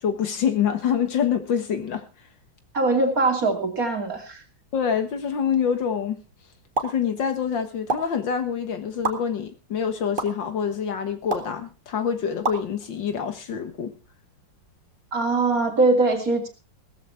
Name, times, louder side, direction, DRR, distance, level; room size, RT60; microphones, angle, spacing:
voice 1, 0.0-2.0 4.7-6.2 6.8-13.9, left 7 dB, 65° left, 2.1 m, -26 dB
voice 2, 2.7-4.4 15.1-16.5, right 3 dB, 40° right, 3.1 m, -22 dB
sound 1, 6.8-6.9 7.9-8.0 9.0-9.1 10.2-10.3 11.3-11.5 12.4-12.6, right 3 dB, 25° right, 1.8 m, -25 dB
17.5 x 14.0 x 3.5 m
omnidirectional pair, 2.3 m